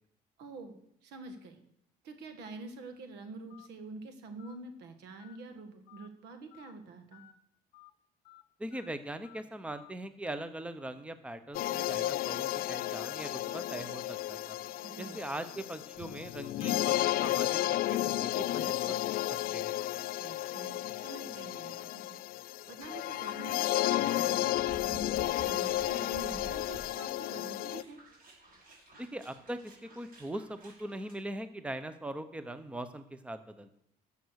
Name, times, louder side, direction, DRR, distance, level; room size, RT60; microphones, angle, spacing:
voice 1, 0.4-1.6 2.0-7.2 14.8-15.2 20.1-28.0, right 3 dB, 85° right, 7 dB, 1.8 m, -47 dB
Telephone, 3.5-3.7 4.4-4.6 5.2-5.4 5.9-6.1 6.5-6.7 7.1-7.3 7.7-7.9 8.2-8.4 8.7-8.9 9.2-9.4 9.7-9.9 10.2-10.4, left 16 dB, 75° left, 0.8 m, -56 dB
voice 2, 8.6-14.6 15.0-19.0 19.5-19.7 29.0-33.7, right 1 dB, 5° right, 11 dB, 0.9 m, -41 dB
sound 1, 11.5-27.8, left 14 dB, 60° left, 0.4 m, -33 dB
sound 2, 24.6-31.1, right 1 dB, 55° right, 6.2 m, -52 dB
13.0 x 7.1 x 6.5 m, 0.73 s
cardioid pair, 110°, 17 cm